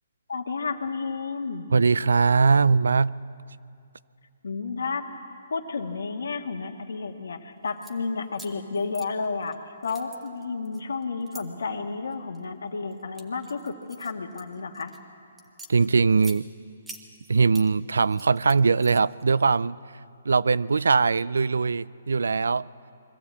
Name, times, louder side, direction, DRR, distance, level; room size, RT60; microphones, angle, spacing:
voice 1, 0.3-1.7 4.4-5.0 5.5-14.9, left 4 dB, 85° left, 5 dB, 1.7 m, -31 dB
voice 2, 1.7-3.1 15.7-16.5 17.3-19.8 20.2-22.7, right 4 dB, 90° right, 20 dB, 0.4 m, -21 dB
sound 1, 7.6-7.9 8.3-9.5 9.8-11.4 12.1-12.4 12.9-15.0 15.4-16.4 16.9-17.7 18.0-19.2, right 2 dB, 5° right, 1.0 m, -46 dB
21.5 x 14.5 x 8.4 m, 2.4 s
hypercardioid pair, 160°, 0 cm